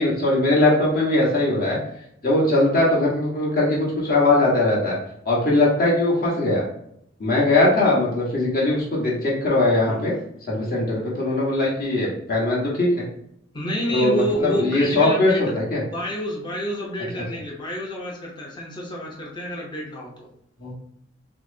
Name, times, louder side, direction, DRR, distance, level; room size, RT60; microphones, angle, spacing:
voice 1, 0.0-1.8 2.2-5.0 5.2-6.6 7.2-10.1 10.5-13.0 13.9-15.8 20.6-20.7, left 2 dB, 50° left, -5 dB, 1.3 m, -20 dB
voice 2, 13.5-15.7 15.9-20.3, equal, 25° left, -2 dB, 0.7 m, -29 dB
5.8 x 2.1 x 2.6 m, 0.73 s
head